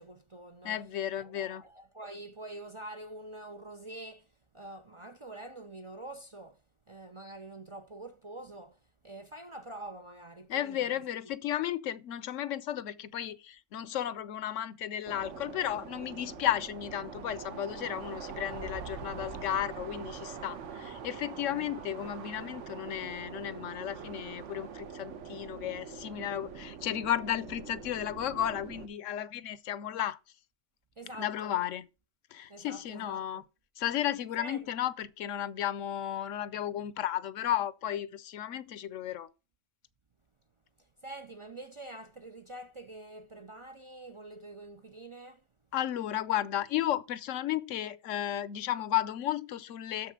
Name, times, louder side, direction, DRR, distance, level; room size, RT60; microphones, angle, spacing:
voice 1, 0.0-0.8 1.2-4.3 4.5-6.6 6.9-11.0 21.6-21.9 31.0-31.6 32.5-33.4 34.4-34.7 41.0-45.4, right 2 dB, 35° right, 0.5 m, -46 dB
voice 2, 0.6-1.6 10.5-30.2 31.2-31.9 32.3-33.4 33.8-39.3 45.7-50.1, left 11 dB, 85° left, 1.0 m, -34 dB
sound 1, 15.0-28.9, right 6 dB, 75° right, 1.2 m, -44 dB
7.0 x 5.8 x 6.0 m
omnidirectional pair, 1.3 m